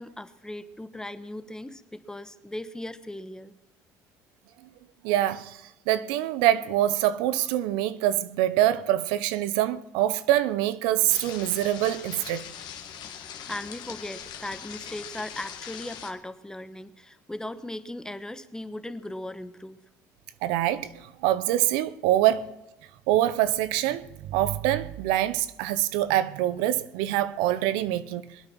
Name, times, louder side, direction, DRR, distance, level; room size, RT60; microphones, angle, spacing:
voice 1, 0.0-3.5 13.5-19.8, left 1 dB, 10° left, 1.2 m, -38 dB
voice 2, 5.0-5.6 5.9-12.5 20.4-22.5 23.1-28.2, right 13 dB, 85° right, 0.7 m, -25 dB
sound 1, 11.1-16.1, left 8 dB, 65° left, 2.0 m, -41 dB
23.0 x 8.9 x 6.1 m
supercardioid pair, 80°, 8 cm